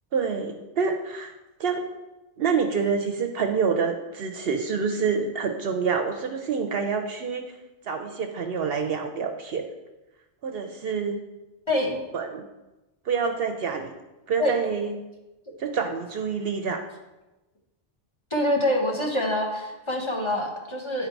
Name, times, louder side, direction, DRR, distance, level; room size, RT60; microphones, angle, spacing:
voice 1, 0.1-1.3 1.6-1.8 2.4-7.6 7.8-9.7 10.4-11.2 12.1-12.4 13.0-13.9 14.3-15.0 15.6-16.8, right 5 dB, 65° right, 4 dB, 0.8 m, -27 dB
voice 2, 11.7-12.0 14.4-14.5 18.3-21.1, left 1 dB, 25° left, 0 dB, 1.1 m, -25 dB
9.8 x 4.0 x 4.5 m, 1.1 s
omnidirectional pair, 1.2 m